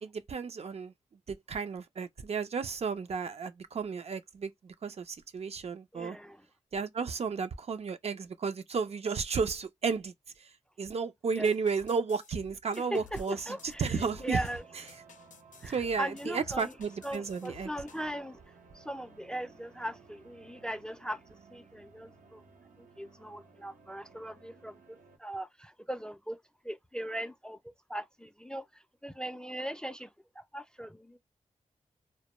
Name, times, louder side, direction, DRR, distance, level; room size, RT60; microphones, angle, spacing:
voice 1, 0.0-0.9 1.3-6.2 6.7-10.1 10.4-10.5 10.8-14.4 15.6-17.7, right 5 dB, 55° right, 0.5 m, -33 dB
voice 2, 5.9-6.4 11.3-11.5 12.8-14.6 15.6-16.7 17.0-18.4 18.7-21.2 21.5-22.4 22.8-24.8 25.2-26.4 26.6-27.6 27.9-30.1 30.4-31.2, right 1 dB, 5° left, 0.3 m, -39 dB
sound 1, 11.4-18.1, left 6 dB, 75° left, 0.5 m, -54 dB
sound 2, 13.3-25.2, right 4 dB, 85° right, 0.7 m, -58 dB
2.1 x 2.0 x 2.9 m
wide cardioid pair, 100°, 13 cm